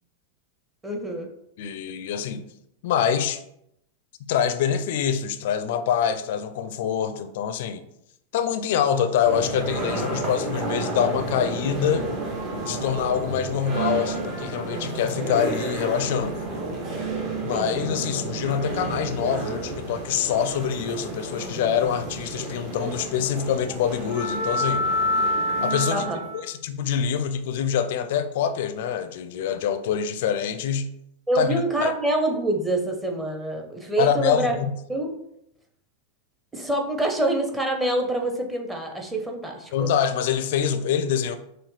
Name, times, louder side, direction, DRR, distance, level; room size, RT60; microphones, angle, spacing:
voice 1, 0.8-1.3 17.5-17.7 25.9-26.2 31.3-34.6 34.9-35.1 36.5-39.9, right 1 dB, 10° right, 0.8 m, -26 dB
voice 2, 1.6-2.4 2.8-3.4 4.3-7.8 8.3-12.1 12.6-16.4 17.4-24.9 25.6-26.1 26.3-30.9 31.4-31.5 31.8-31.9 34.0-34.7 39.7-41.4, left 8 dB, 55° left, 0.4 m, -25 dB
sound 1, 9.3-26.4, right 1 dB, 35° right, 1.0 m, -29 dB
6.1 x 2.3 x 3.2 m
figure-of-eight pair, 90°, 0 cm